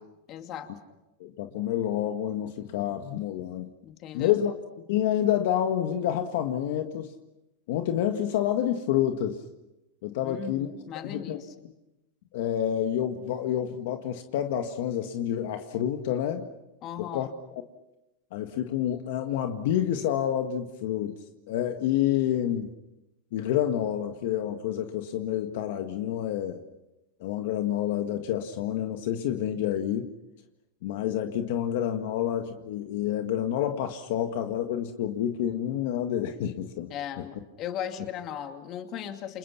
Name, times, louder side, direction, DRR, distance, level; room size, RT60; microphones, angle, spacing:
voice 1, 0.3-0.7 3.8-4.4 10.2-11.5 16.8-17.3 36.9-39.4, left 9 dB, 35° left, 5 dB, 2.6 m, -37 dB
voice 2, 1.2-3.7 4.1-4.5 4.9-7.1 7.7-9.4 10.0-10.7 11.0-11.4 12.3-16.5 17.0-17.3 18.3-21.1 21.5-22.7 23.3-26.6 27.2-30.1 30.8-36.9, left 10 dB, 60° left, 6 dB, 1.8 m, -28 dB
29.5 x 27.5 x 5.9 m, 0.94 s
supercardioid pair, 155°, 0 cm